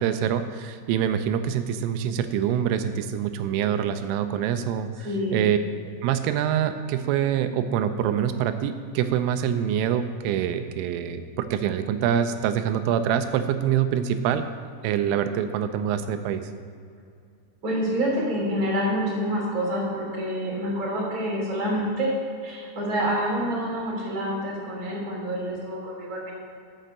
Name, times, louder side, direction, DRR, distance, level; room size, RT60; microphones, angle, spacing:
voice 1, 0.0-4.9 5.3-5.6 6.0-14.4 14.8-16.4, right 9 dB, 85° right, 9 dB, 3.2 m, -25 dB
voice 2, 5.0-5.4 17.6-22.1 22.4-26.3, equal, 20° right, -4 dB, 2.8 m, -27 dB
13.5 x 6.5 x 6.6 m, 2.3 s
omnidirectional pair, 5.7 m